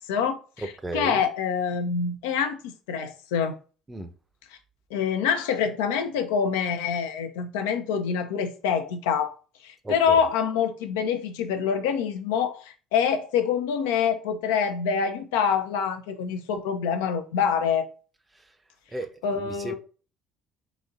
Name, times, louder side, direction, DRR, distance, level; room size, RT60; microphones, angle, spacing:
voice 1, 0.1-3.6 4.9-9.3 9.6-17.9 19.2-19.7, left 7 dB, 70° left, 0.5 m, -26 dB
voice 2, 0.6-1.2 3.9-4.1 9.8-10.2 18.9-19.7, right 2 dB, 15° right, 0.6 m, -34 dB
4.0 x 2.9 x 2.5 m
figure-of-eight pair, 55°, 0 cm